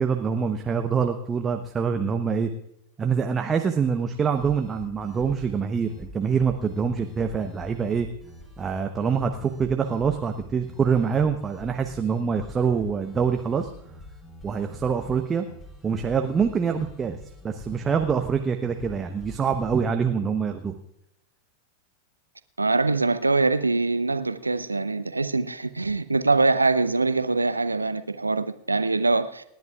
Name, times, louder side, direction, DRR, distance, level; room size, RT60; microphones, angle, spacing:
voice 1, 0.0-2.5 3.0-8.1 8.6-13.7 14.4-15.4 15.8-17.2 17.4-20.8, right 6 dB, 20° right, 5 dB, 0.9 m, -25 dB
sound 1, 4.3-19.8, left 1 dB, 15° left, 4.3 m, -45 dB
voice 2, 22.6-29.4, right 3 dB, 80° right, 13 dB, 0.7 m, -23 dB
29.5 x 10.5 x 2.4 m, 0.79 s
figure-of-eight pair, 90°, 0 cm